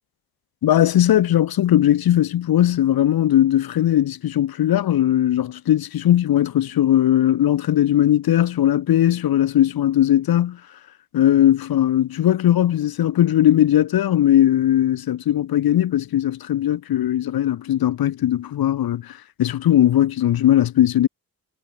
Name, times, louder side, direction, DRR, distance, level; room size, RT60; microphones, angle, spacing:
voice 1, 0.6-10.6 11.1-19.1 19.4-21.1, left 12 dB, 80° left, 0.7 m, -18 dB
wide cardioid pair, 175°, 36 cm